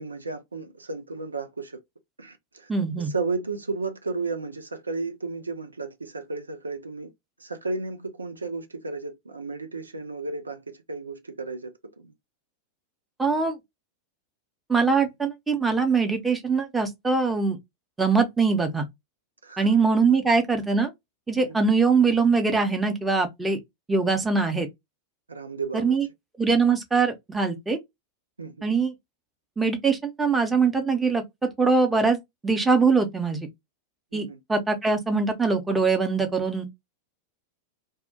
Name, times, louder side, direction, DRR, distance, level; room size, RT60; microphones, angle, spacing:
voice 1, 0.0-1.8 2.2-2.7 3.0-7.1 7.4-12.1 19.4-19.7 21.5-21.6 25.3-26.0 28.4-28.7 34.1-34.4, right 3 dB, 80° right, 0.4 m, -33 dB
voice 2, 2.7-3.1 13.2-13.6 14.7-17.6 18.0-18.9 19.6-20.9 21.3-23.6 23.9-24.7 25.7-26.0 26.4-27.8 28.6-28.9 29.6-31.2 31.6-33.5 34.1-36.7, right 4 dB, 10° right, 0.6 m, -22 dB
2.2 x 2.1 x 2.6 m
figure-of-eight pair, 90°, 0 cm